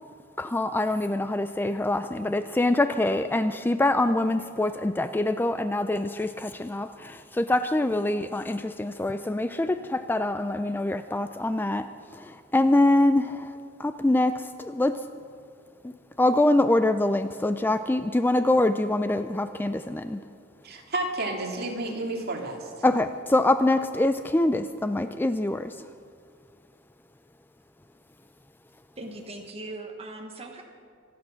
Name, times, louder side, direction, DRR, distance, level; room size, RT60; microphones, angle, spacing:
voice 1, 0.4-11.9 12.1-13.5 13.8-15.0 15.8-20.2 22.8-25.9, left 2 dB, 10° left, 10 dB, 0.3 m, -24 dB
voice 2, 20.6-22.7, right 2 dB, 50° right, 1 dB, 2.3 m, -31 dB
voice 3, 29.0-30.6, right 2 dB, 30° right, 2 dB, 1.2 m, -39 dB
25.5 x 8.6 x 6.3 m, 2.2 s
head